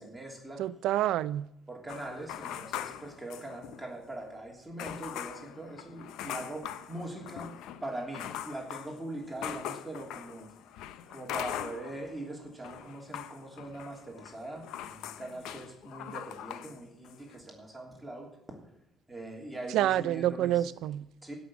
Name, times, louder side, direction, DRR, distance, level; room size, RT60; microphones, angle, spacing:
voice 1, 0.0-0.6 1.7-7.5 7.8-10.5 11.1-18.3 19.1-20.7 21.2-21.3, right 1 dB, 5° right, 3.1 m, -42 dB
voice 2, 0.6-1.5 19.7-21.1, right 13 dB, 80° right, 0.4 m, -28 dB
sound 1, 1.9-3.9 4.2-4.3 4.8-12.2 12.5-16.8 17.0-17.4, left 10 dB, 90° left, 0.6 m, -41 dB
16.5 x 6.3 x 7.0 m
cardioid pair, 110°, 0 cm